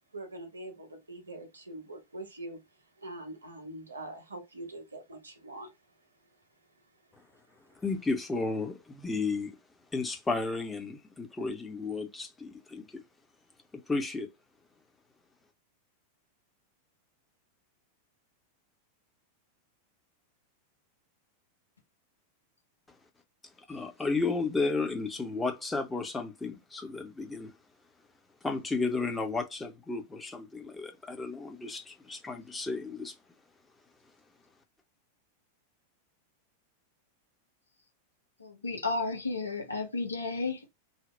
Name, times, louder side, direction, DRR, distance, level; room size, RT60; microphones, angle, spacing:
voice 1, 0.1-2.6 3.0-5.8, right 1 dB, 75° right, 0.8 m, -43 dB
voice 2, 7.8-9.6 9.9-13.0 13.9-14.3 23.7-27.5 28.4-33.2, left 3 dB, 10° left, 0.6 m, -33 dB
voice 3, 38.4-40.7, left 3 dB, 80° left, 0.8 m, -33 dB
2.7 x 2.0 x 3.0 m
figure-of-eight pair, 90°, 0 cm